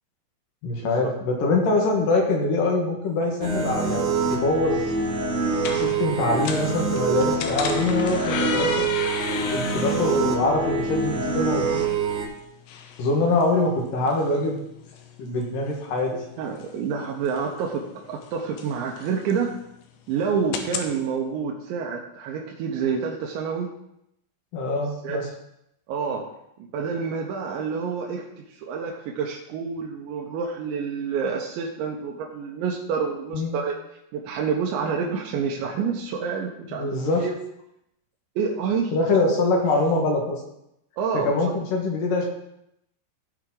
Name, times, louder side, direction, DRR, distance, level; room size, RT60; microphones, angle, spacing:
voice 1, 0.6-4.9 5.8-8.7 9.5-11.9 13.0-14.6 15.2-16.1 24.5-25.3 33.3-33.6 36.7-37.3 38.9-40.4 41.1-42.3, left 2 dB, 60° left, 0 dB, 2.7 m, -24 dB
sound 1, 3.4-12.3, right 4 dB, 60° right, 2.3 m, -25 dB
sound 2, 3.7-20.9, left 7 dB, 80° left, 3.0 m, -37 dB
voice 2, 16.1-19.6 20.1-23.7 25.0-25.3 25.9-26.3 26.7-33.8 34.1-37.3 38.4-38.9 39.3-39.4 39.8-39.9 41.0-41.4, right 6 dB, 85° right, -1 dB, 3.3 m, -28 dB
16.0 x 5.8 x 3.8 m, 0.80 s
omnidirectional pair, 5.1 m